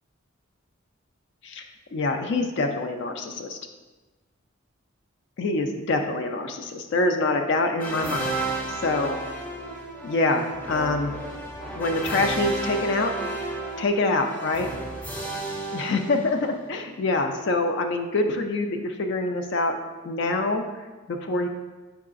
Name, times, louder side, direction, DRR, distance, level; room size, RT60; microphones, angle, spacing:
voice 1, 1.9-3.6 5.4-8.2 8.7-9.2 10.0-11.1 11.8-13.1 13.8-14.7 15.7-19.7 20.0-20.6 21.1-21.5, left 2 dB, 60° left, 5 dB, 0.4 m, -25 dB
sound 1, 7.8-16.7, right 2 dB, 5° left, 0.6 m, -32 dB
4.7 x 4.6 x 2.5 m, 1.2 s
head